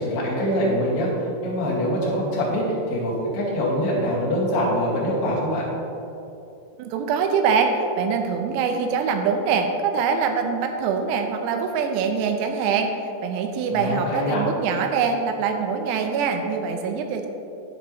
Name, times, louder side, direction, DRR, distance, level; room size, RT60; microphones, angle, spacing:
voice 1, 0.0-5.7 13.7-14.4, equal, 55° left, -5 dB, 3.1 m, -24 dB
voice 2, 6.8-12.9 13.2-17.3, right 5 dB, 85° right, 5 dB, 3.5 m, -24 dB
12.0 x 9.9 x 3.1 m, 2.8 s
omnidirectional pair, 6.0 m